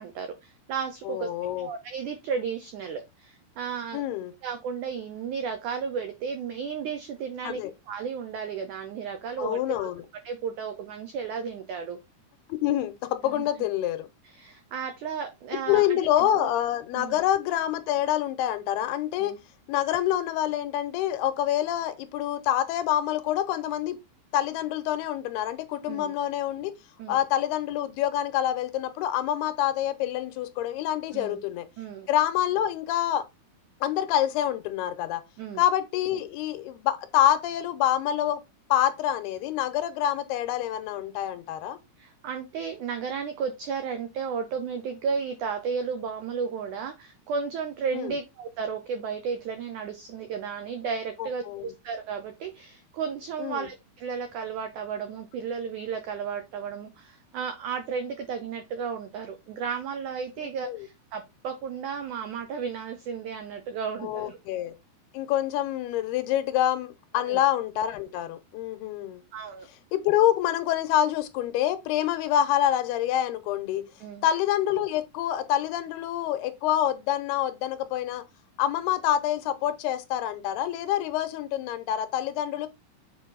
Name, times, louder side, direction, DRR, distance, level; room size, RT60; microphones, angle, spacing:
voice 1, 0.0-1.3 1.6-4.0 4.4-9.9 10.2-12.0 13.2-13.5 14.2-16.5 16.9-17.2 19.2-19.4 25.9-26.1 27.0-27.2 31.1-31.4 31.8-32.1 35.4-35.6 42.0-64.4 67.2-67.4 69.3-69.7 74.0-74.2, right 6 dB, 90° right, 1.7 m, -34 dB
voice 2, 1.1-1.7 3.9-4.3 7.4-7.7 9.4-10.0 12.5-14.1 15.7-19.3 19.7-24.0 24.3-26.7 27.1-31.7 32.1-33.3 33.8-35.2 35.6-38.4 38.7-41.8 47.9-48.1 51.2-51.7 53.4-53.7 60.6-60.9 64.0-64.7 65.1-69.2 69.9-73.8 74.2-78.2 78.6-82.7, left 11 dB, 85° left, 2.7 m, -26 dB
7.4 x 4.7 x 3.9 m
omnidirectional pair, 4.7 m